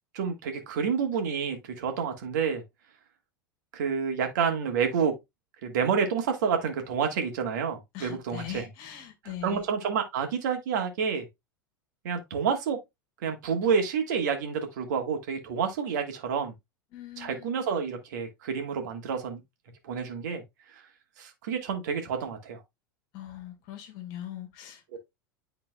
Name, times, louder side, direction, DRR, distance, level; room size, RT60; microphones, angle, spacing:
voice 1, 0.1-2.6 3.7-5.1 5.6-8.6 9.4-11.3 12.0-12.8 13.2-16.5 17.2-19.4 19.8-20.4 20.7-20.8 21.2-22.6 24.9-25.0, right 6 dB, 55° right, 1.7 m, -29 dB
voice 2, 7.9-9.6 16.9-17.7 23.1-25.0, left 11 dB, 45° left, 1.9 m, -41 dB
10.5 x 3.9 x 2.3 m
figure-of-eight pair, 85°, 11 cm